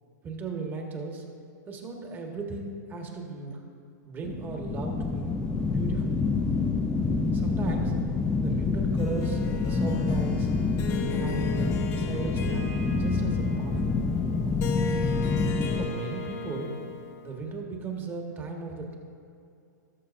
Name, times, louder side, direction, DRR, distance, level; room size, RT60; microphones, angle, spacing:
voice 1, 0.2-1.2 1.7-3.6 4.0-5.3 5.7-6.1 7.3-7.9 8.4-10.5 11.1-13.9 15.7-16.7 17.2-19.0, right 4 dB, 20° right, 2 dB, 1.3 m, -37 dB
sound 1, 4.2-15.9, left 4 dB, 10° left, 0.3 m, -27 dB
Harp, 9.0-17.4, left 4 dB, 30° left, 1.1 m, -38 dB
17.0 x 7.1 x 2.5 m, 2.5 s
hypercardioid pair, 135°, 10 cm